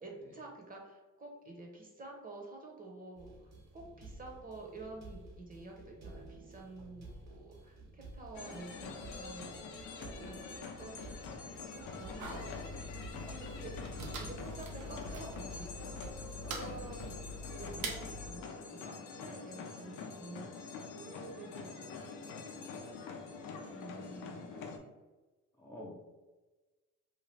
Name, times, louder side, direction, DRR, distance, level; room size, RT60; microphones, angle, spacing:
voice 1, 0.0-11.3 11.7-12.7 13.1-13.7 14.1-16.1 16.4-17.2 17.5-24.7, right 3 dB, 30° right, 0 dB, 0.8 m, -50 dB
sound 1, 3.2-17.1, right 2 dB, 60° right, 0.9 m, -52 dB
sound 2, 8.3-24.8, left 5 dB, 80° left, 0.5 m, -46 dB
voice 2, 12.2-12.7 13.2-13.7 16.4-16.9 25.6-25.9, left 1 dB, 10° left, -4 dB, 0.5 m, -50 dB
sound 3, 12.2-18.3, equal, 85° right, 0.6 m, -44 dB
2.8 x 2.4 x 3.2 m, 1.2 s
cardioid pair, 90°, 30 cm